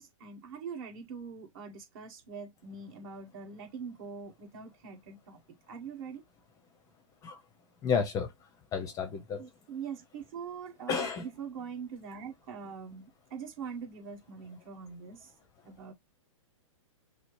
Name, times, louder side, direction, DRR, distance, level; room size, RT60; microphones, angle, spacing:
voice 1, 0.0-5.4 5.7-6.2 9.4-15.3 15.6-15.9, right 6 dB, 45° right, 1.7 m, -43 dB
voice 2, 7.8-8.3 8.7-9.4 10.9-11.3, left 6 dB, 20° left, 0.7 m, -31 dB
6.0 x 2.0 x 3.1 m
hypercardioid pair, 140°, 17 cm